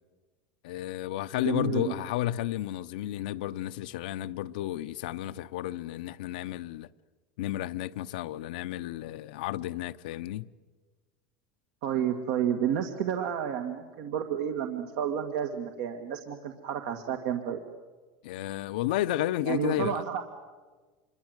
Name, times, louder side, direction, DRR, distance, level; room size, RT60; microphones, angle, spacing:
voice 1, 0.6-6.9 7.4-10.5 18.2-20.0, left 14 dB, 85° left, 0.7 m, -32 dB
voice 2, 1.4-1.9 11.8-17.6 19.4-20.2, right 9 dB, 70° right, 2.1 m, -30 dB
27.5 x 23.5 x 8.1 m
supercardioid pair, 160°, 5 cm